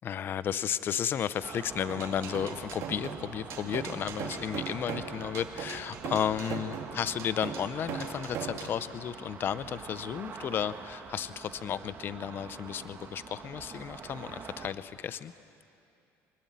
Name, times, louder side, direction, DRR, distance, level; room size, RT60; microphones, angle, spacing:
voice 1, 0.0-15.3, left 9 dB, 40° left, 14 dB, 0.7 m, -33 dB
sound 1, 1.4-14.7, right 6 dB, 35° right, 1.9 m, -45 dB
sound 2, 1.9-8.8, right 7 dB, 55° right, 2.5 m, -39 dB
24.5 x 21.0 x 9.4 m, 2.6 s
cardioid pair, 135°, 6 cm